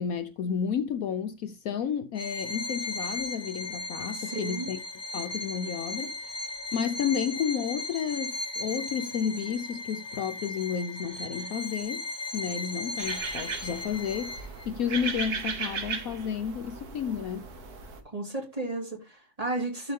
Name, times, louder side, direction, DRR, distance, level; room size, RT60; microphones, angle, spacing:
voice 1, 0.0-4.8 5.1-6.4 6.7-12.0 12.3-17.5, left 7 dB, 70° left, 1.0 m, -31 dB
Bowed string instrument, 2.2-14.7, left 2 dB, 25° left, 0.6 m, -36 dB
voice 2, 4.1-4.7 18.0-19.9, right 2 dB, 20° right, 2.6 m, -33 dB
sound 1, 13.0-18.0, right 5 dB, 70° right, 1.9 m, -36 dB
12.5 x 4.6 x 3.6 m
omnidirectional pair, 1.7 m